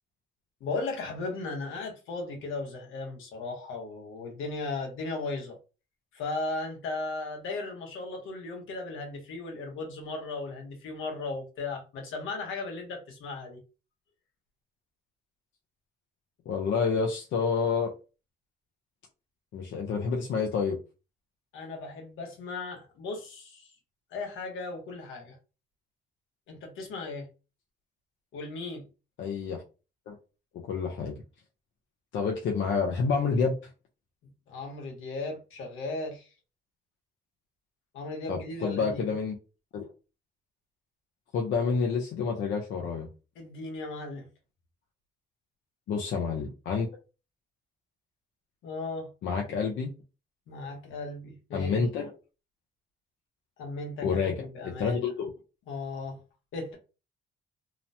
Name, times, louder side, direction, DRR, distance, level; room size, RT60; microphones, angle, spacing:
voice 1, 0.6-5.6 6.1-13.6 21.5-23.7 24.1-25.4 26.5-27.3 28.3-28.9 34.2-36.3 37.9-39.1 43.4-44.2 48.6-49.1 50.5-51.8 53.6-55.0 55.7-56.2 56.5-56.8, left 3 dB, 90° left, 1.1 m, -36 dB
voice 2, 16.5-17.9 19.5-20.8 29.2-29.6 30.1-30.2 30.7-31.2 32.1-33.5 38.3-39.4 39.7-39.9 41.3-43.1 45.9-46.9 49.2-49.9 51.5-52.1 54.0-54.4 54.6-55.3, left 5 dB, 70° left, 0.6 m, -28 dB
3.0 x 2.0 x 2.7 m
cardioid pair, 90°, 20 cm